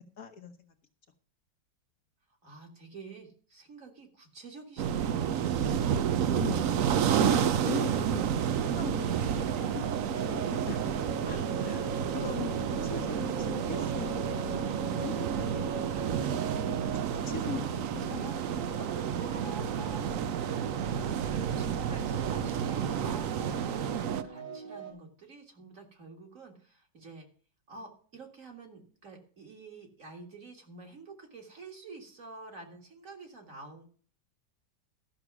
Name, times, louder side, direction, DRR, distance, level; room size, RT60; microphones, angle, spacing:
voice 1, 0.2-0.7 6.4-10.9 11.2-18.4 18.8-19.6, left 7 dB, 55° left, 6 dB, 1.2 m, -42 dB
voice 2, 2.4-5.5 20.5-27.3 27.7-33.8, right 4 dB, 45° right, 2 dB, 2.3 m, -49 dB
sound 1, 4.8-24.2, right 8 dB, 65° right, 0.8 m, -30 dB
sound 2, 9.1-24.9, right 3 dB, 90° right, 3.9 m, -42 dB
13.0 x 6.3 x 6.0 m, 0.44 s
omnidirectional pair, 1.9 m